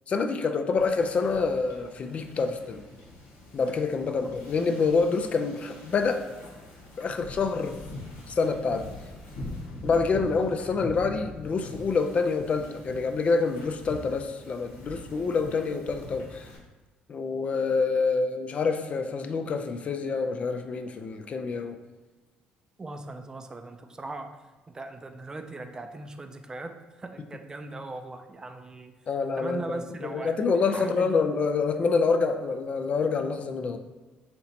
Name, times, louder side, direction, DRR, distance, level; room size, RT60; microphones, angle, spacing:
voice 1, 0.1-2.8 3.5-6.2 7.0-7.8 8.3-8.9 9.8-16.5 17.1-21.8 29.1-33.8, left 4 dB, 40° left, 7 dB, 0.4 m, -27 dB
Wind / Ocean, 0.8-16.6, left 1 dB, 75° left, 1.2 m, -43 dB
voice 2, 22.8-24.3 24.7-28.9 29.4-31.1, right 2 dB, 20° right, 6 dB, 0.4 m, -39 dB
4.3 x 2.8 x 4.2 m, 1.2 s
cardioid pair, 95°, 3 cm